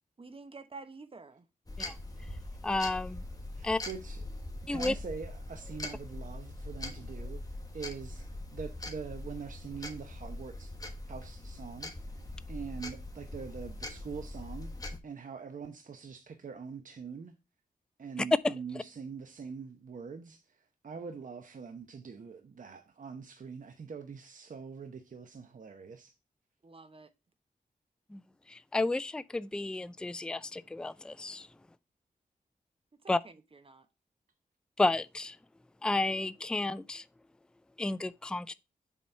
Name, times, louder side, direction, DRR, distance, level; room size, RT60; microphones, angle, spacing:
voice 1, 0.2-1.5 26.6-27.1 33.0-33.9, right 3 dB, 40° right, 1.0 m, -49 dB
sound 1, 1.7-15.0, left 2 dB, 25° left, 1.4 m, -42 dB
voice 2, 2.6-3.2 3.6-3.8 4.7-4.9 28.1-28.2 28.5-31.5 33.1-33.2 34.8-35.4 35.8-37.0 37.8-38.5, left 2 dB, 5° left, 0.3 m, -31 dB
voice 3, 3.5-4.2 4.7-7.4 7.7-10.7 11.1-11.9 12.5-14.7 15.0-17.3 18.0-20.4 20.8-26.1, right 5 dB, 60° right, 0.9 m, -43 dB
7.4 x 4.2 x 5.5 m
wide cardioid pair, 80°, 15 cm